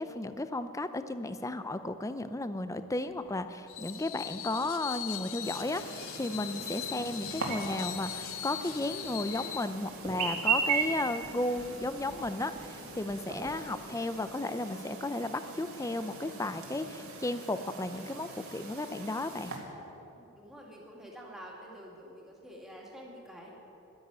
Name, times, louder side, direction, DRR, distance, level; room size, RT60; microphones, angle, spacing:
voice 1, 0.0-19.5, left 2 dB, 15° left, 11 dB, 0.5 m, -34 dB
sound 1, 3.1-14.1, right 1 dB, 25° right, 2.1 m, -50 dB
Screech, 3.7-9.7, left 12 dB, 65° left, 0.6 m, -41 dB
Chirp tweet, 5.4-19.6, right 5 dB, 70° right, 2.2 m, -38 dB
voice 2, 20.1-23.5, equal, ahead, -3 dB, 2.3 m, -48 dB
12.0 x 10.5 x 8.9 m, 2.9 s
head